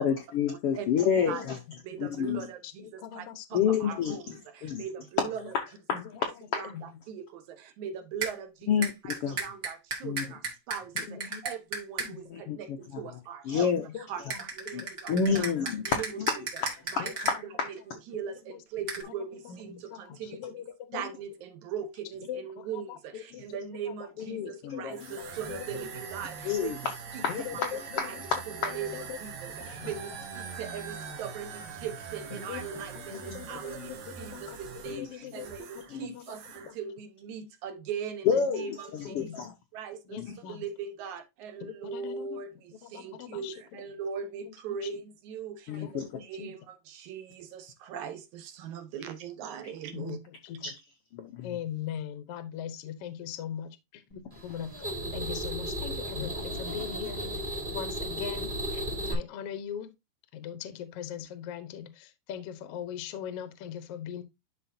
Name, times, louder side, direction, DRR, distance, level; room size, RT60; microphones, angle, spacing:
voice 1, 0.0-1.6 2.0-2.5 3.5-4.2 4.6-4.8 5.2-5.3 5.5-5.6 5.9-6.7 8.7-9.4 10.0-10.2 12.3-13.0 13.4-13.8 14.2-14.3 14.7-14.8 15.1-17.7 24.3-25.3 26.4-26.8 27.2-27.3 27.6-27.7 28.0-28.8 29.8-29.9 33.1-33.4 34.9-35.1 35.9-36.1 38.2-38.6 39.1-39.5 40.2-40.4 45.7-46.1 50.6-50.7 51.1-51.5 56.2-56.3, left 7 dB, 85° left, 1.2 m, -29 dB
voice 2, 1.0-1.5 2.6-3.4 3.9-4.0 5.9-7.0 11.1-11.4 12.0-12.2 13.8-14.4 14.8-15.2 17.0-17.1 18.1-18.2 18.5-18.6 19.4-19.5 19.9-21.0 22.3-24.1 24.4-26.0 27.3-28.2 28.7-29.2 29.6-29.9 32.3-36.4 36.6-36.8 38.5-38.7 39.0-39.4 40.0-40.6 41.6-42.4 42.8-43.8 44.5-44.6 44.8-44.9 45.8-46.5 49.9-50.7 51.4-57.4 57.7-59.9 60.3-64.2, left 9 dB, 70° left, 1.4 m, -41 dB
voice 3, 1.8-5.5 6.5-13.7 14.0-16.3 16.9-17.1 17.4-17.5 18.1-20.5 20.9-26.7 27.1-27.2 27.5-28.3 28.6-38.3 38.5-39.4 39.7-40.2 40.5-50.2, right 7 dB, 70° right, 2.2 m, -40 dB
sound 1, 8.2-8.3 8.8-12.1 14.3-17.3 18.9-19.0, right 3 dB, 35° right, 1.9 m, -34 dB
sound 2, 24.9-35.9 36.2-36.7, right 6 dB, 85° right, 3.2 m, -43 dB
sound 3, 54.3-59.1, equal, 20° right, 1.7 m, -35 dB
11.5 x 4.3 x 2.7 m
omnidirectional pair, 3.9 m